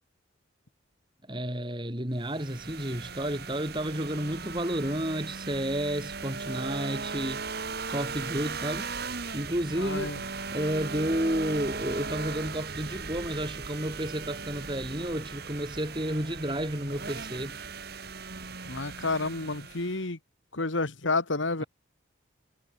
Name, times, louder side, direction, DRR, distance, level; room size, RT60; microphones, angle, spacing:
voice 1, 1.3-7.4 7.9-8.9 9.3-10.2 10.5-17.6 21.6-21.7, right 1 dB, 25° right, 4.0 m, -31 dB
sound 1, 2.2-20.0, right 4 dB, 50° right, 1.8 m, -38 dB
voice 2, 9.8-10.2 18.7-20.2 20.5-21.6, left 3 dB, 70° left, 1.9 m, -30 dB
head